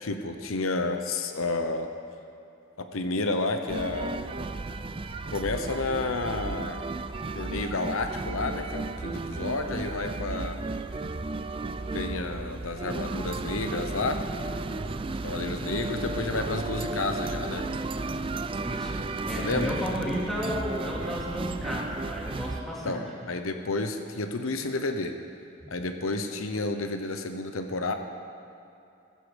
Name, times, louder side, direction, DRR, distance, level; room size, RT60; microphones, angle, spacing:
voice 1, 0.0-1.9 2.8-4.3 5.3-6.8 7.3-10.6 11.9-14.2 15.2-17.7 19.4-19.7 22.8-25.2 25.7-27.9, left 3 dB, 90° left, 6 dB, 0.9 m, -31 dB
sound 1, 3.7-22.6, right 3 dB, 25° right, 0.4 m, -34 dB
voice 2, 18.6-23.0 25.6-25.7, equal, ahead, -5 dB, 2.6 m, -33 dB
15.0 x 14.5 x 5.2 m, 2.7 s
head